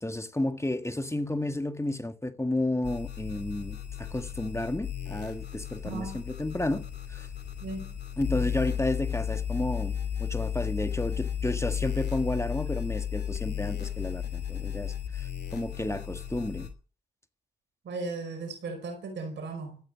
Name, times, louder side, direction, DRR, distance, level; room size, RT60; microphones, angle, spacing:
voice 1, 0.0-6.8 7.1-7.3 8.2-9.9 10.2-16.7, left 1 dB, 15° left, 1.7 m, -32 dB
sound 1, 2.8-16.7, left 9 dB, 65° left, 2.7 m, -34 dB
voice 2, 5.8-6.2 7.6-7.9 17.8-19.8, right 3 dB, 85° right, 4.8 m, -36 dB
14.5 x 8.9 x 7.5 m
supercardioid pair, 40°, 18 cm